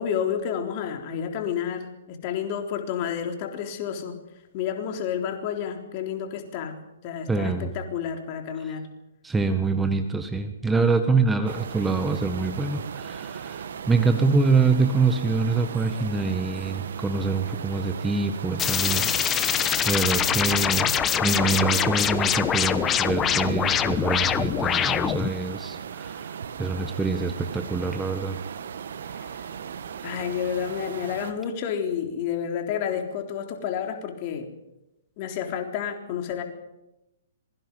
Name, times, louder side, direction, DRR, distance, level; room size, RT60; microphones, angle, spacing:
voice 1, 0.0-4.2 4.5-8.9 29.1-29.3 30.0-34.5 35.2-36.4, left 8 dB, 40° left, 4 dB, 3.8 m, -30 dB
voice 2, 7.3-7.7 8.6-8.7 9.2-19.4 19.8-20.9 21.2-28.4, right 4 dB, 10° right, 7 dB, 1.6 m, -25 dB
sound 1, 11.5-31.3, right 7 dB, 60° right, 1.7 m, -37 dB
sound 2, 18.6-25.3, left 9 dB, 20° left, 1.2 m, -24 dB
26.0 x 22.5 x 5.5 m, 0.93 s
figure-of-eight pair, 120°, 0 cm